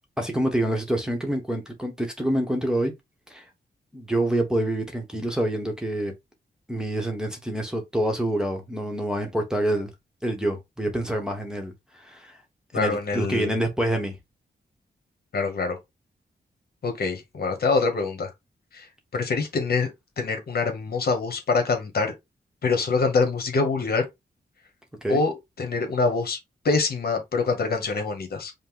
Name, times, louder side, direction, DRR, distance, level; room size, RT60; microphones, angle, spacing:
voice 1, 0.2-2.9 3.3-3.4 3.9-6.1 6.7-9.9 10.2-11.7 12.0-12.4 12.7-14.1 25.0-25.2, right 1 dB, 5° right, 1.0 m, -26 dB
voice 2, 12.7-13.6 15.3-15.8 16.8-18.3 18.7-18.8 19.1-19.9 20.2-22.1 22.6-24.1 25.1-26.4 26.6-28.5, left 4 dB, 65° left, 1.4 m, -25 dB
5.3 x 2.2 x 3.8 m
wide cardioid pair, 135°, 17 cm